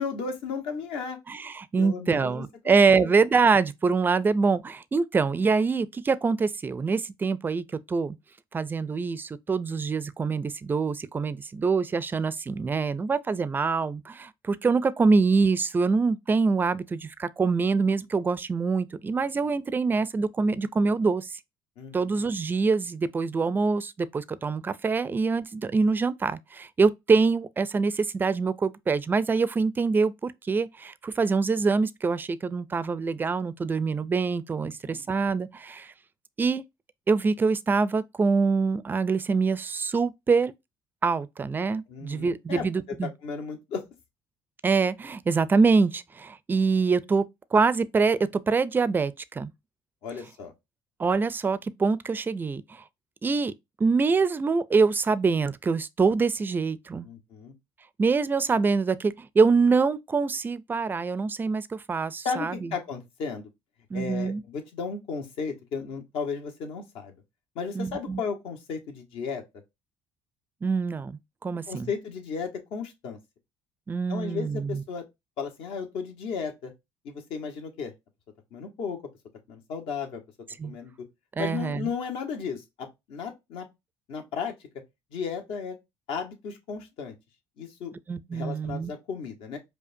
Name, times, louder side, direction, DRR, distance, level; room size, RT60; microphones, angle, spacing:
voice 1, 0.0-1.2 1.8-3.1 21.8-22.2 34.6-35.0 41.9-43.8 50.0-50.5 57.0-57.5 62.2-63.5 63.9-67.2 67.5-69.4 71.7-73.2 74.1-75.0 75.4-76.7 77.0-77.9 78.5-79.0 79.5-80.2 80.6-80.9 81.4-83.7 84.1-84.5 85.1-85.8 86.1-87.1 87.6-87.9 88.3-89.6, left 5 dB, 75° left, 1.2 m, -34 dB
voice 2, 1.3-8.2 8.5-21.4 21.9-35.9 36.4-36.6 37.1-40.5 41.0-43.1 44.6-47.3 47.5-49.5 51.0-52.8 53.2-53.5 53.8-57.1 58.0-62.7 63.9-64.4 67.8-68.2 70.6-71.9 73.9-74.8 80.6-80.7 81.4-81.9 88.1-88.9, right 4 dB, 20° right, 0.4 m, -25 dB
5.0 x 2.4 x 2.6 m
cardioid pair, 105°, 9 cm